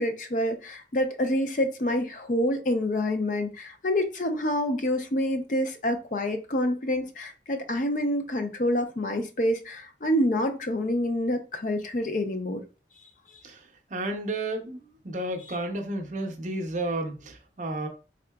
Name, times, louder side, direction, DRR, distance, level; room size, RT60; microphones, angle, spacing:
voice 1, 0.0-12.6, left 1 dB, 45° left, 0.5 m, -27 dB
voice 2, 13.4-17.9, right 1 dB, 45° right, 0.6 m, -32 dB
3.7 x 3.6 x 2.2 m
head